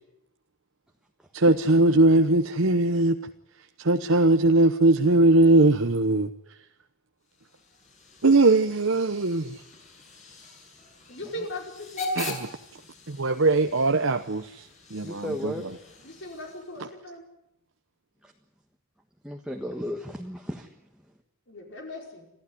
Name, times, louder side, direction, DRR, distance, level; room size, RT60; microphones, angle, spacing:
voice 1, 1.3-3.2 3.8-6.3 8.2-9.6 12.1-12.5 13.1-15.7, right 2 dB, 65° right, 7 dB, 1.0 m, -20 dB
Hiss / Train / Alarm, 7.2-16.9, left 2 dB, 35° left, 6.4 m, -41 dB
voice 2, 11.1-12.4 16.0-17.2 21.5-22.3, left 1 dB, 55° left, 1 dB, 5.0 m, -39 dB
voice 3, 15.0-15.6 18.2-18.3 19.2-20.7, equal, 5° right, 2 dB, 1.5 m, -34 dB
26.5 x 15.5 x 9.9 m, 0.83 s
head